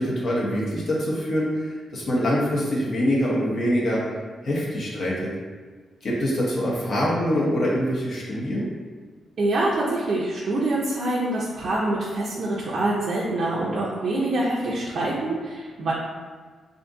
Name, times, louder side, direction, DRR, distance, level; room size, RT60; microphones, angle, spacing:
voice 1, 0.0-4.0 4.4-5.3 6.0-8.7, equal, 50° left, -5 dB, 0.8 m, -24 dB
voice 2, 9.4-15.9, right 2 dB, 50° right, -7 dB, 0.4 m, -25 dB
2.5 x 2.5 x 3.6 m, 1.5 s
wide cardioid pair, 165°, 0 cm